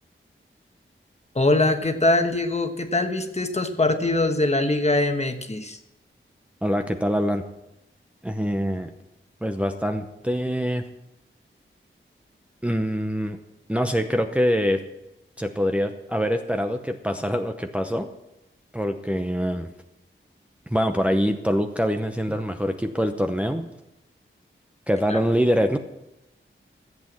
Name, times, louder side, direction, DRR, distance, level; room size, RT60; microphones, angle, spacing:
voice 1, 1.3-5.8 25.1-25.2, left 2 dB, 30° left, 6 dB, 1.3 m, -22 dB
voice 2, 6.6-7.4 8.2-8.9 9.4-10.8 12.6-13.4 13.7-14.8 15.4-18.1 18.7-19.7 20.7-23.7 24.9-25.8, equal, 5° right, 5 dB, 0.8 m, -24 dB
14.0 x 8.1 x 7.3 m, 0.92 s
wide cardioid pair, 90°, 21 cm